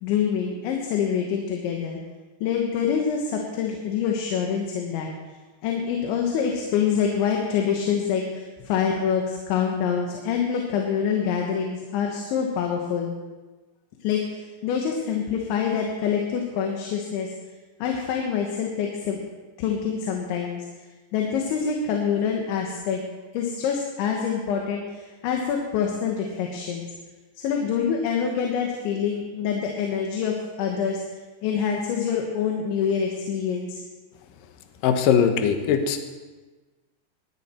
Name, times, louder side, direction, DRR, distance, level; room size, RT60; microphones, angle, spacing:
voice 1, 0.0-2.0 2.4-5.1 5.6-13.2 14.0-17.3 17.8-19.2 19.6-20.7 21.1-23.0 23.3-26.9 27.4-31.0 31.4-33.8, left 7 dB, 85° left, 1 dB, 3.6 m, -26 dB
voice 2, 34.8-36.0, left 7 dB, 70° left, 6 dB, 2.2 m, -20 dB
19.5 x 11.5 x 4.4 m, 1.3 s
omnidirectional pair, 5.2 m